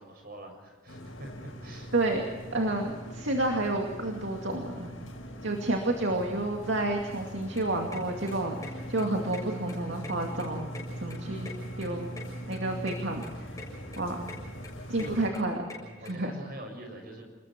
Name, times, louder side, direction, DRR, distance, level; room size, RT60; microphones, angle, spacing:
voice 1, 0.0-1.9 6.0-6.3 14.9-15.3 15.8-17.3, right 1 dB, 45° right, 4 dB, 6.5 m, -45 dB
sound 1, 0.9-15.3, equal, 80° left, 4.9 m, -41 dB
voice 2, 2.5-4.9 5.4-10.7 11.0-11.5 11.8-12.1 12.5-13.2 14.0-14.2 14.9-15.6 16.1-16.3, right 2 dB, 60° right, 2 dB, 2.4 m, -30 dB
sound 2, 7.5-16.1, left 3 dB, 15° left, 6.9 m, -46 dB
29.5 x 21.0 x 4.5 m, 1.5 s
head